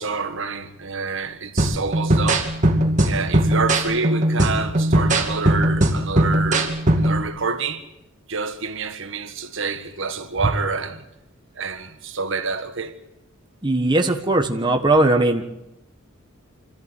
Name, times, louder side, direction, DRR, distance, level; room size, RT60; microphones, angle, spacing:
voice 1, 0.0-2.5 3.0-7.8 8.3-11.0 11.5-12.9, right 4 dB, 65° right, 1.6 m, -27 dB
sound 1, 1.6-7.2, right 1 dB, 40° right, 2.4 m, -19 dB
voice 2, 13.6-15.4, right 2 dB, 25° right, 1.4 m, -19 dB
26.0 x 14.0 x 8.4 m
head